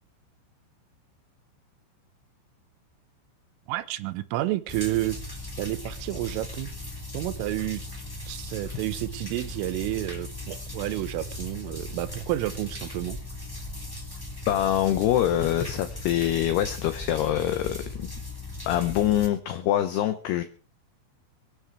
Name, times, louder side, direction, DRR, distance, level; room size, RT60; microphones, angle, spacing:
voice 1, 3.7-5.2 5.6-6.7 7.1-7.8 8.3-13.2, right 16 dB, 85° right, 15 dB, 3.5 m, -30 dB
sound 1, 4.7-19.3, left 2 dB, 5° left, 1.7 m, -38 dB
voice 2, 14.5-18.1 18.7-20.4, left 12 dB, 75° left, 10 dB, 2.5 m, -25 dB
24.0 x 10.0 x 4.7 m, 0.37 s
omnidirectional pair, 5.7 m